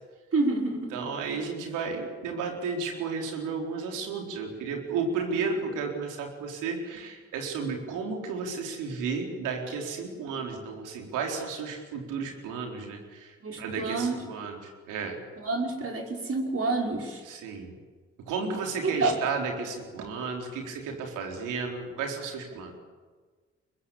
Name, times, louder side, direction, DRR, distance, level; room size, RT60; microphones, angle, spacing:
voice 1, 0.3-1.1 13.4-14.2 15.4-17.2 18.8-19.2, right 3 dB, 50° right, 1 dB, 5.4 m, -28 dB
voice 2, 0.9-13.3 13.6-14.6 14.9-15.2 17.3-17.7 18.3-22.7, right 5 dB, 80° right, 2 dB, 4.2 m, -33 dB
24.0 x 21.0 x 8.6 m, 1.4 s
hypercardioid pair, 45°, 30 cm